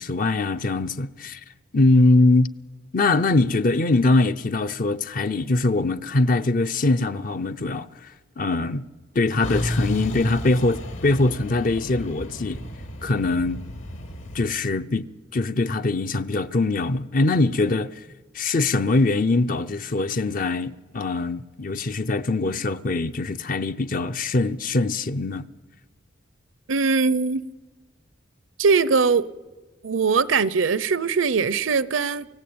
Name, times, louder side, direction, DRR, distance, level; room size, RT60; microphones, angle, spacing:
voice 1, 0.0-1.4 1.7-2.5 2.9-8.8 9.1-12.6 13.0-13.6 14.3-17.9 18.3-25.5, left 2 dB, 40° left, 0.6 m, -22 dB
Truck, 9.4-14.4, equal, 70° left, 3.1 m, -32 dB
voice 2, 26.7-27.4 28.6-29.3 29.8-32.3, right 4 dB, 65° right, 0.6 m, -21 dB
29.0 x 16.0 x 8.7 m
head